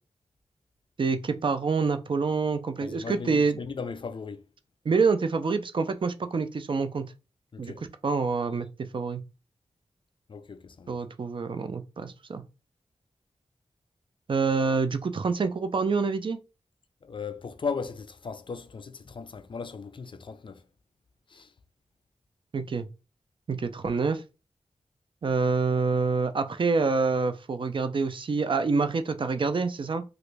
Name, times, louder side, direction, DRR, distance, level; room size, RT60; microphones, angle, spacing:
voice 1, 1.0-3.6 4.9-7.0 7.6-7.7 8.0-8.7 8.9-9.2 10.9-12.4 14.3-16.4 22.5-22.9 23.5-24.2 25.2-30.0, right 4 dB, 45° right, 0.4 m, -26 dB
voice 2, 2.8-4.4 7.5-7.8 10.3-11.0 17.0-20.6 21.3-21.5, left 5 dB, 45° left, 0.4 m, -37 dB
3.0 x 2.4 x 3.2 m
wide cardioid pair, 105°, 12 cm